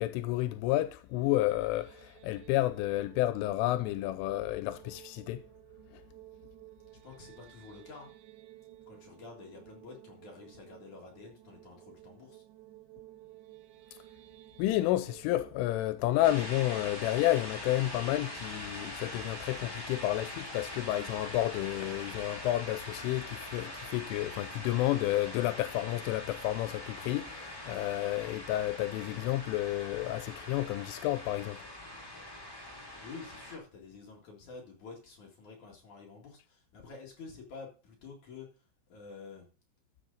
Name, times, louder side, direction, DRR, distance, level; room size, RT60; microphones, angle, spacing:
voice 1, 0.0-5.4 14.6-31.6, left 15 dB, 85° left, 3.1 m, -31 dB
sound 1, 1.0-18.2, right 15 dB, 75° right, 3.2 m, -55 dB
voice 2, 7.0-8.1 8.9-12.4 33.0-38.5 38.9-39.5, left 4 dB, 50° left, 2.6 m, -49 dB
sound 2, 16.2-33.6, left 1 dB, 15° left, 0.9 m, -43 dB
13.5 x 6.7 x 3.9 m
omnidirectional pair, 5.5 m